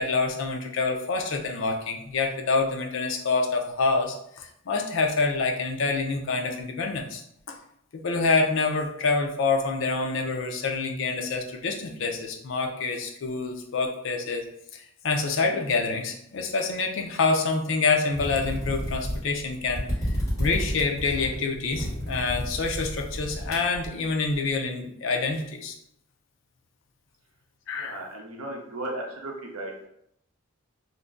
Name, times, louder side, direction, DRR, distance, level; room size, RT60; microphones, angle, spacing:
voice 1, 0.0-7.2 7.5-7.6 7.9-14.4 14.7-19.8 20.4-25.8 27.7-28.0, left 4 dB, 60° left, 2 dB, 0.4 m, -27 dB
sound 1, 18.1-24.3, equal, 15° left, 1.4 m, -31 dB
voice 2, 27.7-29.9, right 1 dB, 85° right, 0 dB, 0.7 m, -36 dB
2.6 x 2.1 x 3.5 m, 0.74 s
head